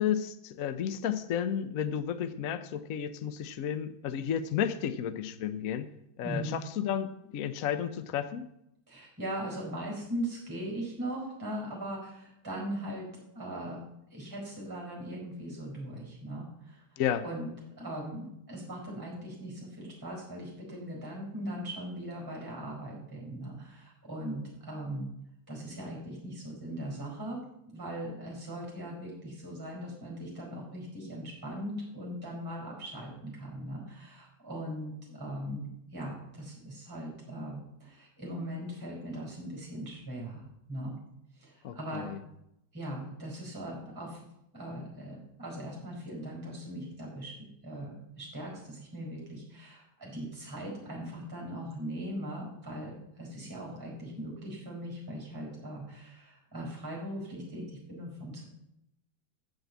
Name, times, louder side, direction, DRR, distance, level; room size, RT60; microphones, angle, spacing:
voice 1, 0.0-5.9 6.2-8.5 17.0-17.2 41.6-42.2, left 9 dB, 60° left, 11 dB, 0.9 m, -32 dB
voice 2, 6.2-6.6 8.9-13.1 13.3-13.8 14.1-17.5 17.8-25.1 25.5-27.4 27.7-35.7 35.9-40.9 41.4-42.1 42.7-44.2 44.5-47.3 47.6-58.4, right 1 dB, 10° right, -2 dB, 4.7 m, -39 dB
13.5 x 5.3 x 8.3 m, 0.79 s
omnidirectional pair, 2.1 m